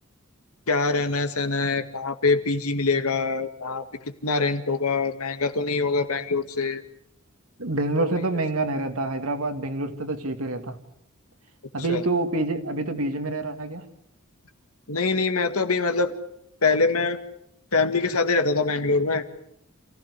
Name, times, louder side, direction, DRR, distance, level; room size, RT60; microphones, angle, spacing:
voice 1, 0.7-3.8 4.2-6.8 8.0-8.2 11.9-12.0 14.9-16.1 16.6-17.2 17.7-19.2, left 3 dB, 80° left, 9 dB, 1.9 m, -24 dB
voice 2, 7.6-10.8 11.7-13.9, right 2 dB, 75° right, 6 dB, 2.4 m, -27 dB
28.0 x 16.0 x 8.3 m, 0.76 s
head